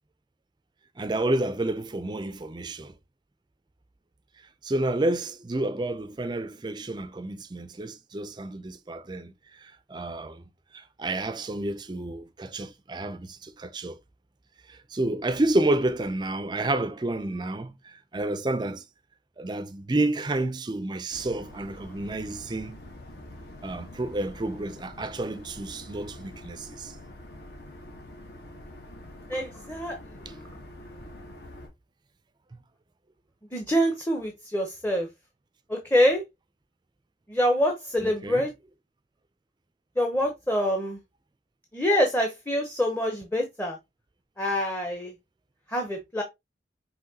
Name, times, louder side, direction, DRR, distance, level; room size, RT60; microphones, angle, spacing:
voice 1, 1.0-2.9 4.6-9.3 9.6-10.4 10.7-14.0 14.7-18.8 19.4-22.8 23.6-27.0 38.0-38.5, right 2 dB, 25° right, 0.4 m, -30 dB
sound 1, 21.1-31.7, left 1 dB, 65° left, 1.2 m, -45 dB
voice 2, 29.3-30.0 30.3-30.4 33.5-35.1 35.7-36.2 37.3-38.5 40.0-41.0 41.7-43.8 44.4-45.1 45.7-46.2, equal, 10° left, 0.7 m, -25 dB
5.6 x 3.0 x 2.7 m
head